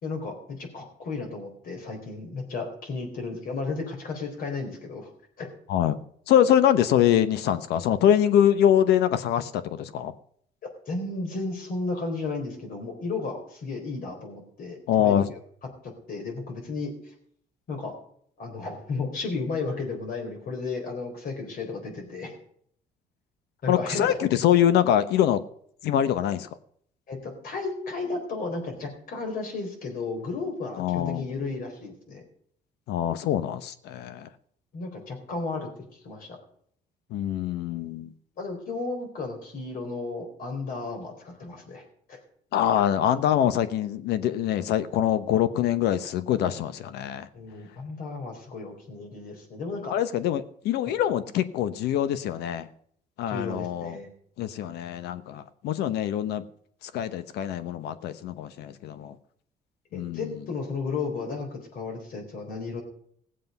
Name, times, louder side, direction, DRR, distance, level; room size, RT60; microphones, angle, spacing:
voice 1, 0.0-5.1 5.4-5.5 10.9-15.2 15.8-16.9 17.7-17.9 18.4-22.4 23.6-24.1 27.1-32.2 34.7-35.7 36.0-36.4 38.4-41.8 42.1-42.2 47.3-49.9 53.3-54.1 59.9-62.8, left 3 dB, 55° left, 3 dB, 4.0 m, -33 dB
voice 2, 6.3-10.1 14.9-15.3 23.7-25.4 25.8-26.5 30.8-31.3 32.9-34.3 37.1-38.1 42.5-47.3 49.9-52.7 53.2-54.0 54.4-56.4 56.8-59.2 59.9-60.3, left 10 dB, 80° left, 13 dB, 0.9 m, -24 dB
17.0 x 7.6 x 5.4 m, 0.64 s
cardioid pair, 110°, 17 cm